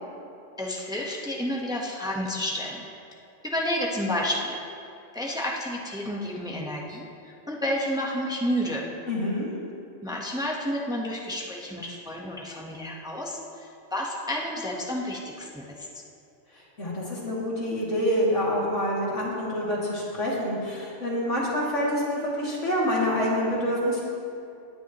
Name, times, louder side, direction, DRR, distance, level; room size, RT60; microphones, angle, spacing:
voice 1, 0.6-2.8 3.4-4.6 5.1-8.9 10.0-15.9, equal, 5° right, -2 dB, 1.1 m, -30 dB
voice 2, 9.1-9.5 16.5-24.0, equal, 80° left, -6 dB, 3.0 m, -27 dB
18.0 x 10.5 x 3.1 m, 2.6 s
omnidirectional pair, 1.2 m